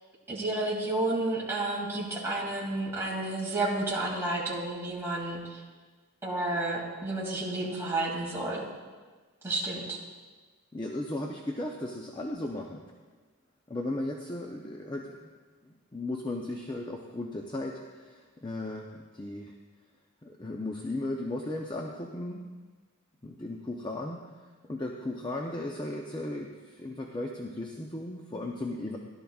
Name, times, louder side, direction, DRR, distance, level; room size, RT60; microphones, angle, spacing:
voice 1, 0.3-5.6 6.2-8.7 9.4-10.0, right 2 dB, 10° right, -6 dB, 2.4 m, -31 dB
voice 2, 10.7-12.8 13.7-15.3 15.6-19.5 20.2-22.5 23.2-24.3 24.6-29.0, left 1 dB, 20° left, 1 dB, 0.6 m, -36 dB
17.0 x 11.5 x 2.4 m, 1.4 s
head